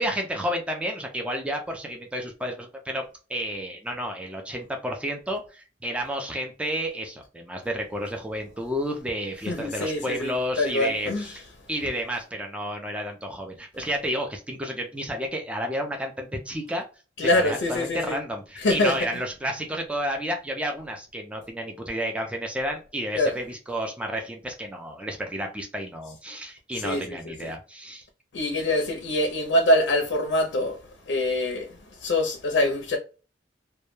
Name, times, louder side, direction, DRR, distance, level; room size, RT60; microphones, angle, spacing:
voice 1, 0.0-11.4 11.7-16.8 17.2-28.1, equal, 5° right, 0.3 m, -31 dB
voice 2, 9.5-11.4 17.2-18.2 18.6-19.0 23.2-23.4 26.8-27.5 28.3-30.8 31.1-33.0, left 1 dB, 75° left, 0.5 m, -24 dB
2.1 x 2.1 x 2.9 m
head